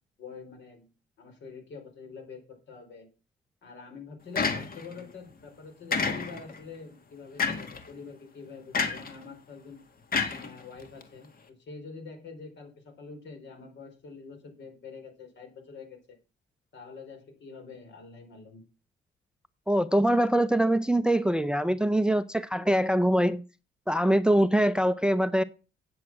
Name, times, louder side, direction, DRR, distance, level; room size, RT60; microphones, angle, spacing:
voice 1, 0.2-0.9 1.2-3.1 3.6-9.8 10.3-16.0 16.7-18.6, left 5 dB, 65° left, 4.0 m, -46 dB
sound 1, 4.4-5.0 5.9-6.6 7.4-7.8 8.7-9.2 10.1-11.0, left 5 dB, 45° left, 1.9 m, -29 dB
voice 2, 19.7-23.4 23.9-25.4, right 1 dB, 5° right, 0.5 m, -23 dB
8.6 x 7.7 x 5.9 m
cardioid pair, 90°, 20 cm